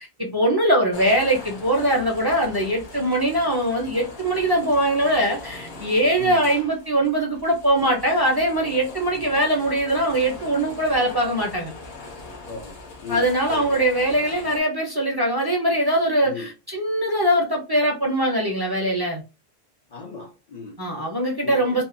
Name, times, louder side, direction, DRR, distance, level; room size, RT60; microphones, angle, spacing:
voice 1, 0.2-11.7 13.1-19.2 20.8-21.8, right 1 dB, 30° right, 0.4 m, -22 dB
sound 1, 0.9-14.6, left 3 dB, 70° left, 0.9 m, -40 dB
voice 2, 12.4-13.2 13.5-13.7 16.2-16.5 19.9-20.8 21.4-21.8, left 4 dB, 50° left, 0.5 m, -36 dB
2.7 x 2.1 x 2.5 m
omnidirectional pair, 1.1 m